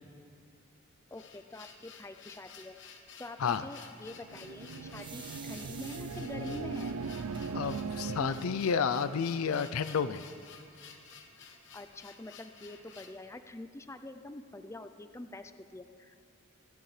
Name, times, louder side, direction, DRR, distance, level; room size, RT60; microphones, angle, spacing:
sound 1, 1.1-13.2, left 6 dB, 60° left, 1.1 m, -53 dB
voice 1, 1.1-2.8 3.2-6.9 11.7-16.2, left 2 dB, 15° left, 8 dB, 0.4 m, -46 dB
sound 2, 4.1-8.8, right 4 dB, 85° right, 0.5 m, -39 dB
sound 3, 5.0-6.6 7.3-7.4 7.9-8.0 8.2-8.8, right 5 dB, 20° right, 1.0 m, -49 dB
voice 2, 7.5-10.2, left 6 dB, 75° left, 14 dB, 0.5 m, -30 dB
27.0 x 10.5 x 3.3 m, 2.6 s
head